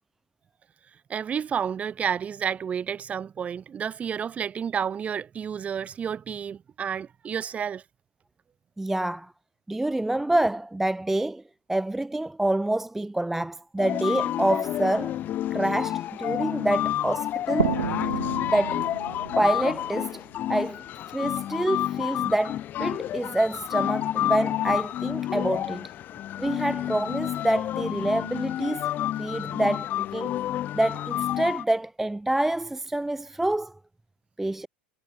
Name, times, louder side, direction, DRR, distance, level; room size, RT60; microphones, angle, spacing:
voice 1, 1.1-7.8, right 7 dB, 25° right, 1.1 m, -30 dB
voice 2, 8.8-9.3 9.7-11.4 11.7-15.2 15.5-17.7 18.5-18.9 19.4-20.2 20.5-20.8 21.1-25.9 26.4-28.9 29.2-30.4 30.7-33.8 34.4-34.7, right 1 dB, 5° right, 0.3 m, -27 dB
sound 1, 13.8-31.6, left 12 dB, 35° left, 0.8 m, -29 dB
sound 2, 17.6-21.1, right 8 dB, 75° right, 0.7 m, -32 dB
figure-of-eight pair, 80°, 5 cm